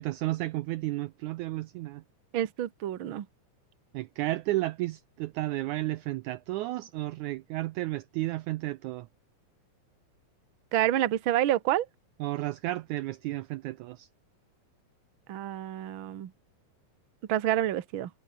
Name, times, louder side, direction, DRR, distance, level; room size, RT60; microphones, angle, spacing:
voice 1, 0.0-2.0 3.9-9.1 12.2-14.1, right 17 dB, 80° right, 1.8 m, -32 dB
voice 2, 2.3-3.3 10.7-11.9 15.3-16.3 17.3-18.1, right 12 dB, 55° right, 1.5 m, -28 dB
omnidirectional pair, 3.9 m